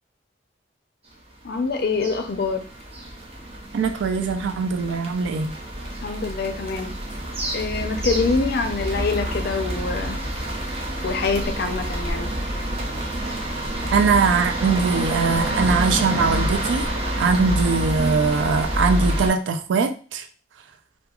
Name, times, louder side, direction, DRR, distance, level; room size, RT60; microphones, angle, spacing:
voice 1, 1.4-2.6 6.0-6.9 7.5-10.2 11.0-12.3, left 4 dB, 60° left, 0.4 m, -25 dB
sound 1, 1.6-19.3, right 1 dB, 35° right, 0.6 m, -28 dB
voice 2, 3.7-5.6 13.9-16.8 17.2-20.2, right 4 dB, 85° right, 0.3 m, -21 dB
2.9 x 2.2 x 2.3 m
head